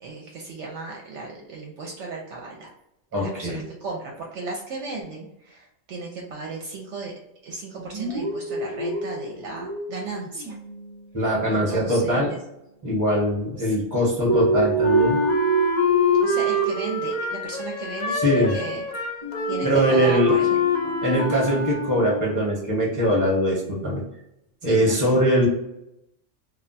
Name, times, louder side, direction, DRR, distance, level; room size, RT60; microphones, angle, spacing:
voice 1, 0.0-2.7 3.2-7.1 7.4-10.6 11.5-12.4 13.6-13.8 16.2-18.8 19.5-20.5 20.8-21.0 24.6-25.2, right 3 dB, 70° right, -1 dB, 0.8 m, -35 dB
voice 2, 3.1-3.6 11.1-12.3 12.8-15.2 18.1-18.5 19.6-20.4 21.0-24.0 24.6-25.5, equal, 15° right, -3 dB, 0.9 m, -22 dB
sound 1, 7.8-10.1 10.3-11.0 14.3-17.2 17.4-17.6 19.2-22.0, right 3 dB, 40° right, 0.5 m, -27 dB
Wind instrument woodwind instrument, 14.8-22.4, left 2 dB, 60° left, 0.4 m, -25 dB
2.4 x 2.2 x 3.9 m, 0.84 s
omnidirectional pair, 1.3 m